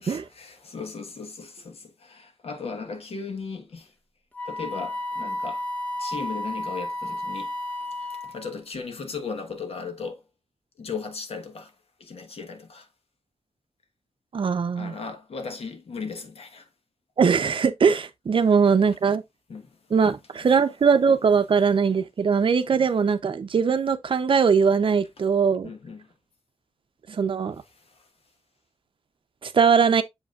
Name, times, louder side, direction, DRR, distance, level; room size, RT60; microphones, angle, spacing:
voice 1, 0.0-3.9 4.4-5.6 6.0-10.2 10.8-11.7 12.0-12.9 14.8-16.7 18.4-18.5 19.5-19.8 20.0-20.1 20.4-20.6 22.7-22.9 25.6-26.1 27.7-28.1, left 5 dB, 70° left, 1.3 m, -37 dB
Wind instrument woodwind instrument, 4.3-8.5, left 1 dB, 15° left, 1.0 m, -32 dB
voice 2, 14.3-14.9 17.2-19.2 19.9-25.7 27.1-27.6 29.4-30.0, right 6 dB, 55° right, 0.7 m, -21 dB
7.3 x 5.4 x 2.4 m
wide cardioid pair, 165°, 11 cm